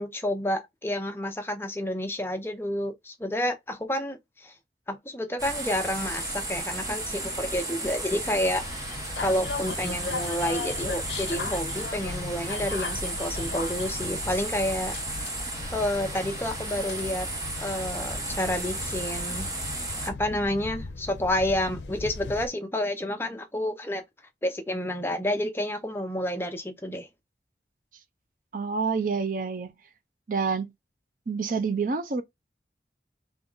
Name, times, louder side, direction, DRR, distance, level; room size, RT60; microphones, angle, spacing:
voice 1, 0.0-4.5 4.9-8.7 9.2-14.9 15.7-17.3 17.6-19.5 20.0-24.0 24.4-27.1, left 1 dB, 15° left, 0.6 m, -29 dB
sound 1, 5.4-20.1, right 2 dB, 20° right, 1.0 m, -34 dB
sound 2, 8.5-22.5, left 4 dB, 75° left, 0.6 m, -38 dB
voice 2, 28.5-29.7 30.3-30.7 31.3-32.2, right 5 dB, 50° right, 0.5 m, -27 dB
3.6 x 3.0 x 3.8 m
head